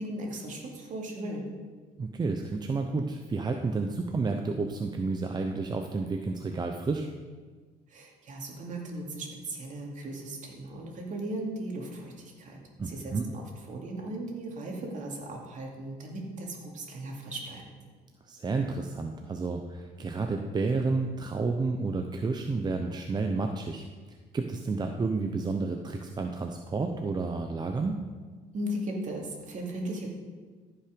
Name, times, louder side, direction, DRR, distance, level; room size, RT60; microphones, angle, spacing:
voice 1, 0.0-1.4 7.9-12.6 12.8-17.6 28.5-30.1, right 1 dB, 50° right, 0 dB, 2.5 m, -37 dB
voice 2, 2.0-7.1 12.8-13.3 18.2-23.8 24.3-28.0, right 3 dB, 25° right, 4 dB, 0.7 m, -30 dB
14.0 x 5.8 x 5.1 m, 1.4 s
cardioid pair, 110°, 17 cm